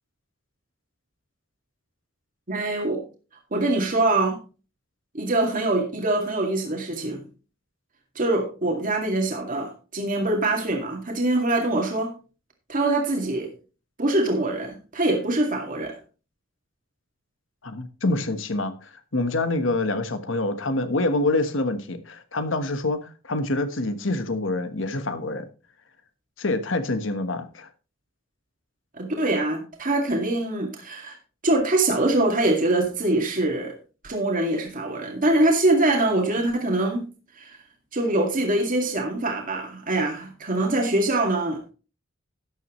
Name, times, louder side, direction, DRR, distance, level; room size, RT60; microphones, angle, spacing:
voice 1, 2.5-3.0 3.5-4.4 5.1-7.2 8.2-12.1 12.7-13.5 14.0-16.0 28.9-31.2 31.4-33.8 34.0-37.0 37.3-37.6 37.9-41.6, right 2 dB, 45° right, 2.2 m, -24 dB
voice 2, 17.6-25.4 26.4-27.7, left 2 dB, 70° left, 1.3 m, -26 dB
13.0 x 9.4 x 3.1 m
head